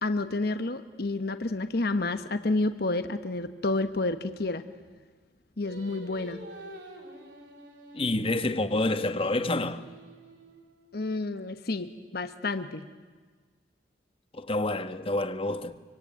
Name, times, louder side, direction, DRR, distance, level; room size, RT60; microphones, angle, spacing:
voice 1, 0.0-4.6 5.6-6.4 10.9-12.8, left 2 dB, 60° left, 1.1 m, -30 dB
Singing, 5.6-10.9, right 1 dB, 85° right, 5.3 m, -48 dB
voice 2, 7.9-9.8 14.3-15.8, left 2 dB, 30° left, 1.3 m, -28 dB
25.0 x 25.0 x 9.4 m
head